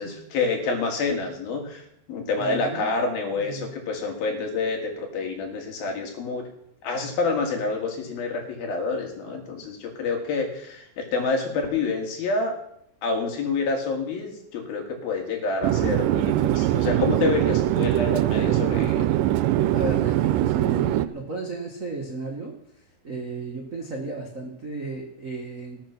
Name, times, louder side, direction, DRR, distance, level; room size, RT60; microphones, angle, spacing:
voice 1, 0.0-6.4 6.8-12.5 13.0-19.1, left 4 dB, 85° left, 2 dB, 4.1 m, -28 dB
voice 2, 2.4-2.9 3.2-3.7 19.7-22.5 23.0-25.8, right 3 dB, 50° right, -1 dB, 0.9 m, -34 dB
Chatter / Fixed-wing aircraft airplane, 15.6-21.1, right 14 dB, 80° right, 2.1 m, -22 dB
19.0 x 7.3 x 6.0 m, 0.75 s
omnidirectional pair, 4.1 m